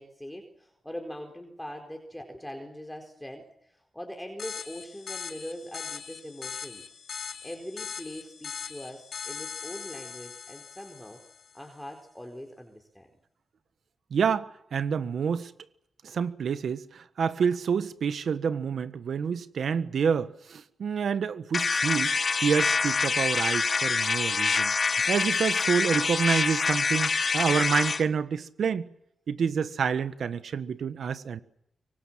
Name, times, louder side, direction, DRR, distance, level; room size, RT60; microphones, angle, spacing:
voice 1, 0.0-6.8 7.4-11.2 11.5-13.1, equal, 5° left, 2 dB, 4.4 m, -42 dB
sound 1, 4.4-11.6, left 6 dB, 75° left, 2.8 m, -40 dB
voice 2, 14.1-15.5 16.0-22.1 22.4-24.7 25.1-28.9 29.3-31.4, right 6 dB, 75° right, 12 dB, 1.4 m, -28 dB
sound 2, 21.5-28.0, left 4 dB, 50° left, 1.4 m, -26 dB
24.5 x 24.0 x 7.5 m, 0.78 s
cardioid pair, 70°, 0 cm